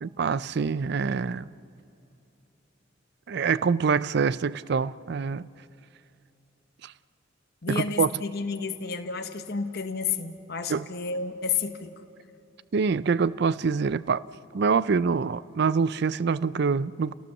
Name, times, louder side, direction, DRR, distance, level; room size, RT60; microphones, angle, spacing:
voice 1, 0.0-1.5 3.3-5.5 6.8-6.9 7.7-8.1 10.7-10.8 12.7-14.2 14.5-17.1, right 5 dB, 55° right, 0.4 m, -25 dB
voice 2, 7.6-11.9, left 5 dB, 55° left, 1.2 m, -31 dB
30.0 x 18.0 x 7.1 m
head